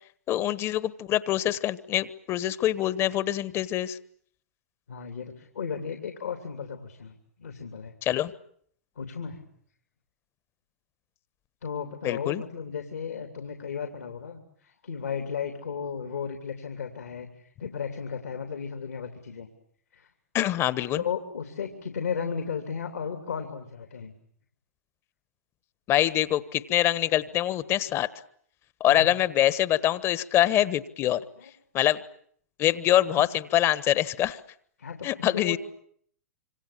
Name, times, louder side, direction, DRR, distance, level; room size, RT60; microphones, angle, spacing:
voice 1, 0.3-4.0 8.0-8.3 12.0-12.4 20.3-21.0 25.9-28.1 28.8-31.2 31.7-32.0 32.6-34.4 35.0-35.6, left 13 dB, 30° left, 17 dB, 1.4 m, -24 dB
voice 2, 4.9-7.9 9.0-9.4 11.6-19.5 19.9-20.1 20.9-24.1 28.9-29.1 31.4-31.5 33.2-33.3 34.8-35.6, left 6 dB, 75° left, 5 dB, 3.1 m, -35 dB
26.5 x 26.0 x 8.6 m, 0.64 s
figure-of-eight pair, 105°, 8 cm